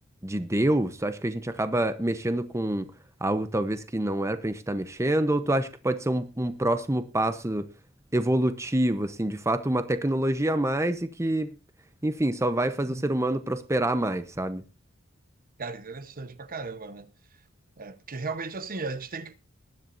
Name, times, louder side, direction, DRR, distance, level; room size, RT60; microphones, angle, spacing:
voice 1, 0.2-2.9 3.2-7.7 8.1-11.5 12.0-14.6, right 1 dB, 15° right, 0.8 m, -26 dB
voice 2, 12.9-13.2 15.6-17.1 17.8-19.4, right 3 dB, 45° right, 1.0 m, -36 dB
20.5 x 11.0 x 2.6 m
head